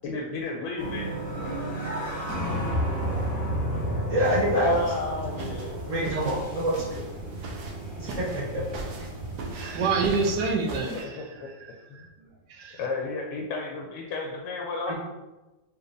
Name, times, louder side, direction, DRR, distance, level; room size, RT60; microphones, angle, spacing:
voice 1, 0.0-1.1 4.5-5.8 10.9-11.5 11.9-12.1 12.8-14.9, left 3 dB, 80° left, 0 dB, 1.3 m, -33 dB
sound 1, 0.8-10.5, right 1 dB, 15° left, 0.3 m, -32 dB
voice 2, 4.1-4.7 5.8-7.0 7.4-7.5 7.9-8.6 14.8-14.9, right 1 dB, 35° right, -8 dB, 0.6 m, -26 dB
sound 2, 4.2-11.0, right 3 dB, 85° right, 1.4 m, -40 dB
voice 3, 9.5-11.2 11.9-12.1 12.5-12.8, right 4 dB, 65° right, 1 dB, 1.1 m, -27 dB
6.0 x 2.8 x 2.6 m, 1.1 s
omnidirectional pair, 2.1 m